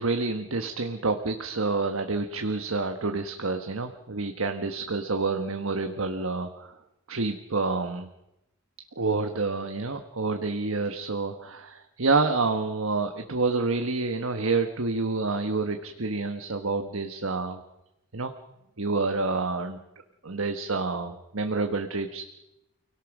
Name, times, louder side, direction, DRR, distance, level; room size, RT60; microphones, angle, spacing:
voice 1, 0.0-6.7 7.1-8.1 9.0-17.6 18.1-18.3 18.8-19.8 20.2-22.3, right 3 dB, 80° right, 6 dB, 1.4 m, -28 dB
29.5 x 18.0 x 6.2 m, 0.91 s
head